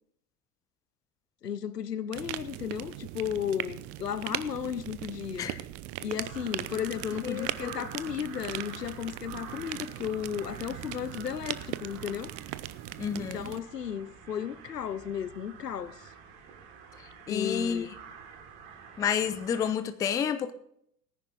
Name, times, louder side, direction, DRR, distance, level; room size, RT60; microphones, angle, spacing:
voice 1, 1.4-5.5 6.0-12.3 13.2-16.1 17.3-17.9, left 8 dB, 85° left, 0.8 m, -34 dB
sound 1, 2.1-13.6, right 16 dB, 30° right, 0.6 m, -39 dB
sound 2, 6.2-19.7, right 6 dB, 50° right, 3.0 m, -48 dB
voice 2, 7.2-7.9 13.0-13.5 17.3-17.9 19.0-20.5, left 8 dB, 10° left, 0.4 m, -30 dB
18.0 x 10.0 x 3.7 m
figure-of-eight pair, 85°, 47 cm